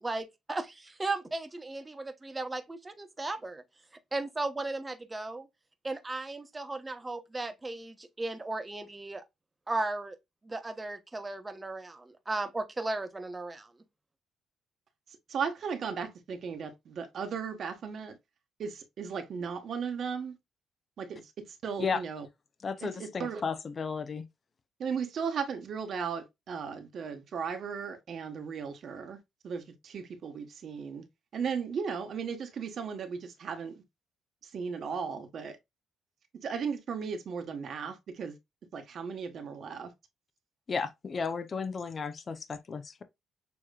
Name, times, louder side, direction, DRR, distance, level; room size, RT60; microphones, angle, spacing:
voice 1, 0.0-3.6 4.1-5.5 5.8-9.2 9.7-10.2 10.4-13.7, right 2 dB, 20° right, 1.0 m, -36 dB
voice 2, 15.3-18.2 18.6-20.4 21.0-22.3 22.8-23.4 24.8-29.2 29.4-31.0 31.3-33.7 34.4-35.6 36.4-38.4 38.7-39.9, right 6 dB, 60° right, 1.2 m, -36 dB
voice 3, 22.6-24.2 40.7-43.0, left 5 dB, 40° left, 0.7 m, -34 dB
7.0 x 3.1 x 2.4 m
cardioid pair, 90°, 0 cm